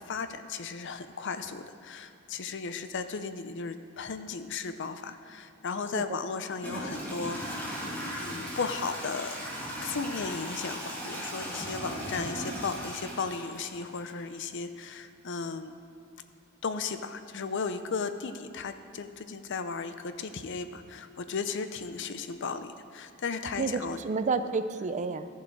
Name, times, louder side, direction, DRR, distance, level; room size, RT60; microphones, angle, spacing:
voice 1, 0.0-7.8 8.2-9.4 9.8-15.8 16.6-24.0, left 5 dB, 60° left, 10 dB, 0.6 m, -35 dB
Toilet flush / Trickle dribble, 5.8-5.9 6.5-14.3, equal, 10° left, 2.5 m, -37 dB
voice 2, 23.6-25.3, right 4 dB, 35° right, 10 dB, 0.4 m, -30 dB
13.5 x 7.1 x 4.6 m, 2.7 s
head